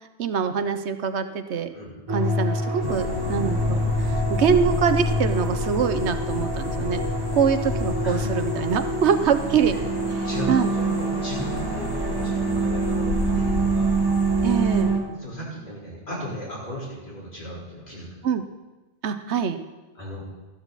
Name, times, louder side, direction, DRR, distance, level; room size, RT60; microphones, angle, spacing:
voice 1, 0.2-1.7 2.1-7.0 7.3-9.8 10.1-10.7 11.8-11.9 14.4-14.9 18.2-18.4 19.0-19.6, right 7 dB, 80° right, 10 dB, 1.1 m, -24 dB
sound 1, 2.1-15.0, right 1 dB, 20° right, 1.6 m, -26 dB
sound 2, 2.8-14.8, left 1 dB, 80° left, 1.9 m, -32 dB
voice 2, 10.2-13.9 15.1-18.2 20.0-20.2, equal, 45° left, -6 dB, 4.6 m, -36 dB
14.0 x 12.5 x 4.1 m, 1.2 s
omnidirectional pair, 1.1 m